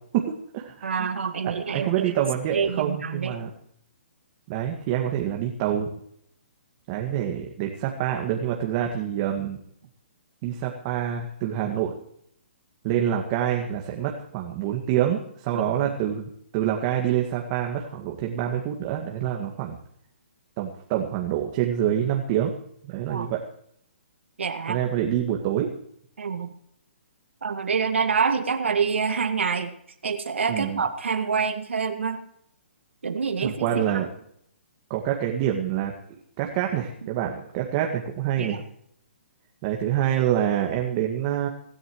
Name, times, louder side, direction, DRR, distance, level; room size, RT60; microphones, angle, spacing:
voice 1, 0.1-1.1 1.4-3.5 4.5-5.9 6.9-9.6 10.4-11.9 12.8-19.8 20.6-22.5 22.8-23.4 24.7-25.7 30.5-30.8 33.4-34.1 34.9-38.6 39.6-41.5, right 10 dB, 35° right, 1 dB, 2.0 m, -26 dB
voice 2, 0.8-2.1 2.5-3.3 15.5-15.6 23.1-23.3 24.4-24.8 26.2-26.5 27.4-29.7 30.0-32.2 33.0-33.7 33.9-34.0 38.4-38.6, right 5 dB, 80° right, 7 dB, 2.1 m, -26 dB
24.5 x 14.0 x 3.2 m, 0.69 s
hypercardioid pair, 140°, 6 cm